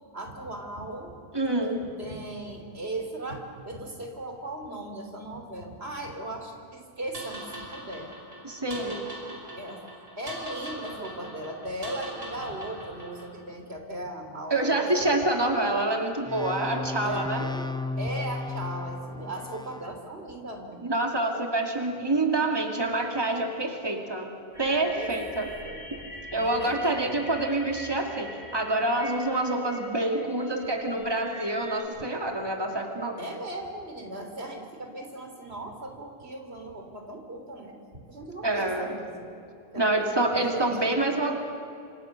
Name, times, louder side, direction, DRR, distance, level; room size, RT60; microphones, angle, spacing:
voice 1, 0.1-1.2 1.7-8.1 9.6-9.8 10.2-15.2 17.0-20.8 24.7-25.1 25.6-26.1 26.3-27.2 33.2-37.8 38.1-39.3 39.7-41.0, right 1 dB, 85° right, 3 dB, 3.6 m, -38 dB
voice 2, 1.3-1.8 8.4-9.0 14.5-17.4 20.8-24.3 24.6-25.5 26.3-33.2 38.4-39.0 39.8-41.4, right 2 dB, 25° right, 2 dB, 2.6 m, -27 dB
sound 1, 7.1-13.4, right 1 dB, 65° right, 5.7 m, -42 dB
sound 2, 16.3-19.9, left 3 dB, 5° left, 0.5 m, -34 dB
sound 3, 24.5-31.8, equal, 85° left, 5.6 m, -43 dB
27.5 x 26.0 x 6.7 m, 2.6 s
omnidirectional pair, 1.0 m